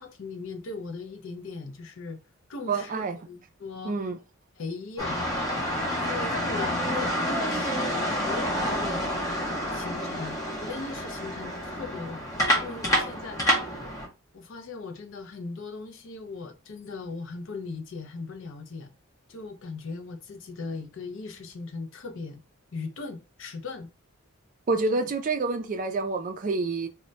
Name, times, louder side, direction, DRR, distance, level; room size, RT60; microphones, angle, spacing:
voice 1, 0.0-2.2 2.5-4.0 4.6-5.3 6.0-9.2 9.7-12.2 12.5-13.4 14.3-18.9 19.3-22.4 22.7-23.9 24.9-25.1, left 4 dB, 60° left, 0.5 m, -38 dB
voice 2, 2.7-3.2 3.8-4.2 24.7-26.9, right 3 dB, 35° right, 0.3 m, -27 dB
sound 1, 5.0-14.1, equal, 15° left, 0.6 m, -28 dB
2.2 x 2.1 x 3.8 m
head